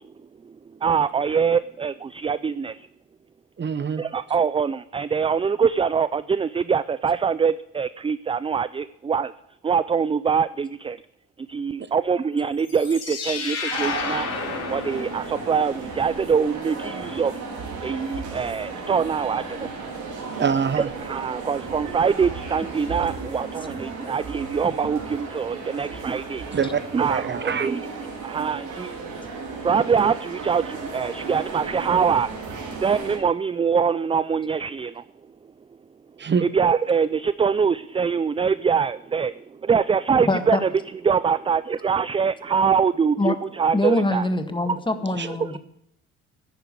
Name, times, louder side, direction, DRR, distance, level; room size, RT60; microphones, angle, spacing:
voice 1, 0.8-2.7 4.0-9.3 9.6-11.0 11.5-14.3 14.7-17.3 17.8-19.4 20.8-26.4 26.9-27.8 28.2-28.9 29.6-30.6 30.9-32.3 32.8-34.9 36.4-39.3 39.7-40.7 41.0-44.3, right 6 dB, 20° right, 16 dB, 0.4 m, -23 dB
voice 2, 3.6-4.0 20.4-20.9 26.5-26.8 27.1-27.7 36.2-36.5 45.1-45.3, right 6 dB, 35° right, 14 dB, 0.8 m, -24 dB
sound 1, 12.6-15.7, left 5 dB, 55° left, 3.8 m, -31 dB
sound 2, 13.7-33.2, right 4 dB, 80° right, 4.1 m, -34 dB
voice 3, 40.2-40.6 43.2-43.3 43.7-45.6, left 2 dB, 15° left, 8 dB, 1.6 m, -24 dB
10.5 x 9.3 x 8.4 m, 0.81 s
cardioid pair, 90°, 30 cm